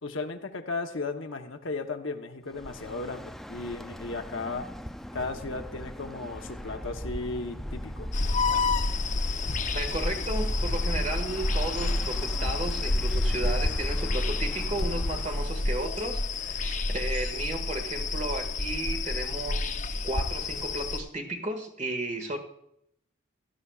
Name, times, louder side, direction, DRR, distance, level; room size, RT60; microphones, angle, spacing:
voice 1, 0.0-4.7 5.1-8.1, left 3 dB, 65° left, 5 dB, 1.0 m, -35 dB
Bird, 2.5-15.6, equal, ahead, 0.3 m, -40 dB
sound 1, 8.1-21.0, left 2 dB, 40° left, 0.7 m, -29 dB
voice 2, 9.7-19.8 20.0-22.4, right 2 dB, 35° right, 4 dB, 1.7 m, -34 dB
16.5 x 12.0 x 2.4 m, 0.75 s
head